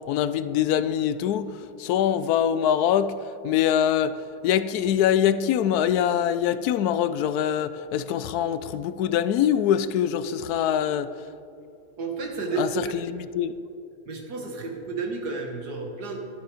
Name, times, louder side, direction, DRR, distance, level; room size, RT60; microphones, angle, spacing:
voice 1, 0.1-3.1 3.4-4.2 4.4-11.1 12.6-13.5, left 9 dB, 80° left, 13 dB, 1.1 m, -24 dB
voice 2, 12.0-12.9 14.1-16.2, right 4 dB, 85° right, 2 dB, 2.2 m, -31 dB
12.5 x 11.5 x 5.0 m, 2.5 s
omnidirectional pair, 1.7 m